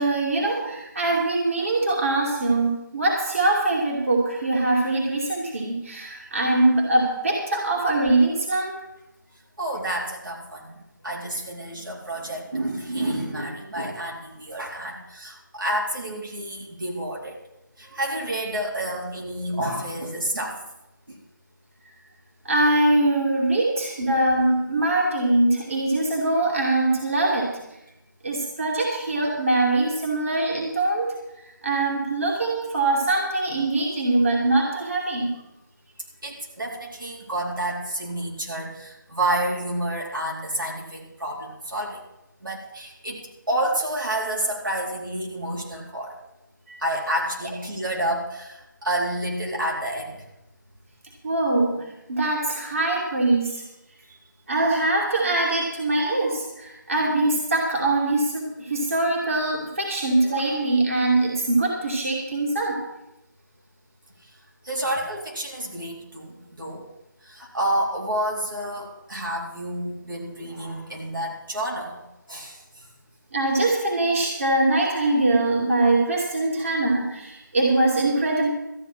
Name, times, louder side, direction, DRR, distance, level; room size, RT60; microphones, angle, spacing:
voice 1, 0.0-8.7 22.4-27.5 28.2-31.1 31.6-35.3 46.7-46.8 51.2-51.8 52.1-53.6 54.5-62.8 73.3-78.5, right 2 dB, 40° right, -2 dB, 2.6 m, -22 dB
voice 2, 9.6-10.8 11.0-17.3 17.8-20.6 21.1-21.2 36.2-42.0 42.4-43.2 43.5-46.2 46.8-50.2 64.6-66.8 67.2-72.0 72.3-72.6, right 1 dB, 85° right, -2 dB, 4.1 m, -29 dB
13.5 x 9.9 x 6.1 m, 0.90 s
figure-of-eight pair, 170°, 11 cm